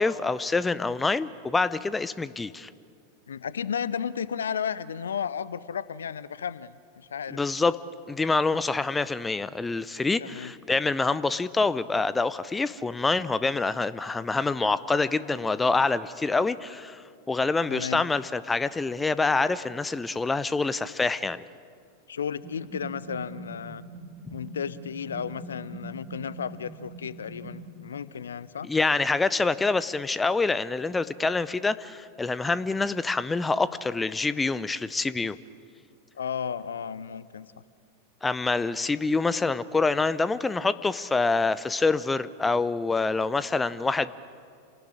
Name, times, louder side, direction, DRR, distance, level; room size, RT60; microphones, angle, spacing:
voice 1, 0.0-2.7 7.3-7.8 8.1-17.0 17.3-21.4 28.6-35.4 38.2-44.1, left 3 dB, 10° left, 17 dB, 0.6 m, -26 dB
voice 2, 3.3-7.4 10.2-10.5 17.7-18.0 22.1-23.8 24.3-28.7 36.1-37.5, left 7 dB, 70° left, 18 dB, 0.6 m, -33 dB
sound 1, 22.4-27.7, right 2 dB, 25° right, 3.3 m, -43 dB
27.5 x 18.5 x 8.8 m, 2.3 s
figure-of-eight pair, 90°, 0 cm